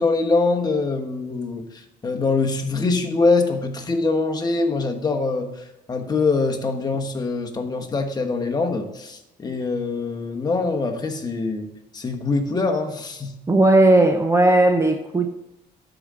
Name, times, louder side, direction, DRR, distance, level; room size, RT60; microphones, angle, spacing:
voice 1, 0.0-1.6 2.0-5.5 5.9-13.3, left 3 dB, 25° left, 3 dB, 1.3 m, -23 dB
voice 2, 13.5-15.3, right 2 dB, 15° right, 6 dB, 0.7 m, -16 dB
12.5 x 5.0 x 3.8 m, 0.97 s
cardioid pair, 110°, 17 cm